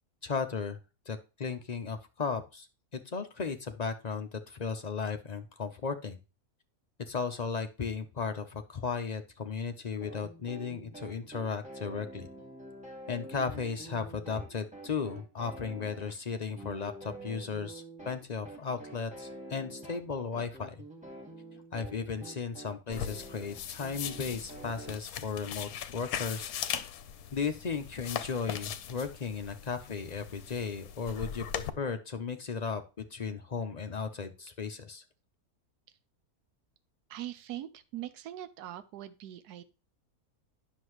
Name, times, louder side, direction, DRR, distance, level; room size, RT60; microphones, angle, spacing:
voice 1, 0.2-0.8 1.1-2.7 2.9-6.2 7.1-12.3 13.1-20.8 21.7-26.5 27.3-32.8 33.1-35.0, left 5 dB, 50° left, 6 dB, 0.5 m, -35 dB
sound 1, 10.0-25.0, right 1 dB, 5° right, 2.0 m, -47 dB
sound 2, 22.9-31.7, left 9 dB, 70° left, 1.1 m, -39 dB
voice 2, 37.1-39.6, right 13 dB, 85° right, 12 dB, 1.2 m, -42 dB
9.7 x 6.4 x 3.1 m, 0.31 s
omnidirectional pair, 1.6 m